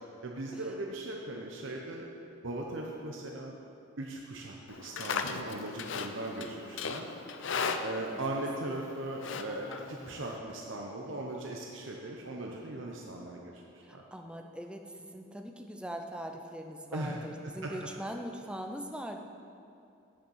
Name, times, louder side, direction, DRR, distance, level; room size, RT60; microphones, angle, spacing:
voice 1, 0.2-2.0 2.4-3.6 4.0-7.1 7.8-13.6 13.9-14.0 16.9-17.2 17.4-17.7, right 2 dB, 65° right, -1 dB, 0.9 m, -39 dB
Livestock farm animals working animals, 4.7-10.4, left 5 dB, 60° left, 0.5 m, -38 dB
voice 2, 9.5-10.2 13.9-19.2, equal, 5° right, 4 dB, 0.6 m, -42 dB
8.8 x 6.5 x 7.2 m, 2.6 s
head